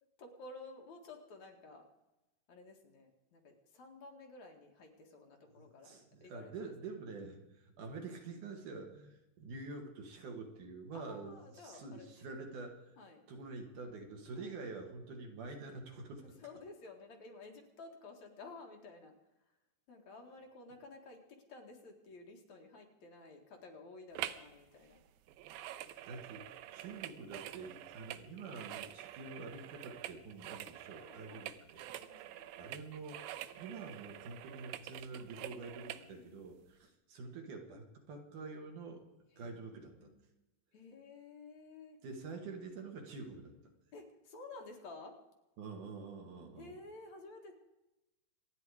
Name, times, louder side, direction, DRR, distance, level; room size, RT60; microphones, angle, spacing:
voice 1, 0.2-1.9 2.5-5.9 6.2-6.7 10.9-12.5 13.0-13.2 14.3-14.5 16.4-19.1 19.4-19.6 19.9-25.0 31.0-31.6 31.9-32.5 35.9-36.6 39.3-40.2 40.7-42.0 43.9-45.2 46.6-47.5, left 3 dB, 55° left, 2 dB, 3.0 m, -53 dB
voice 2, 5.6-13.0 13.3-16.4 26.1-31.8 32.6-33.3 33.5-39.0 39.4-40.1 42.0-43.5 45.6-46.7, right 3 dB, 65° right, 3 dB, 3.3 m, -47 dB
sound 1, 24.2-24.5 24.8-36.1 36.6-36.7, right 13 dB, 85° right, 2.5 m, -47 dB
27.0 x 9.8 x 4.9 m, 0.99 s
omnidirectional pair, 4.0 m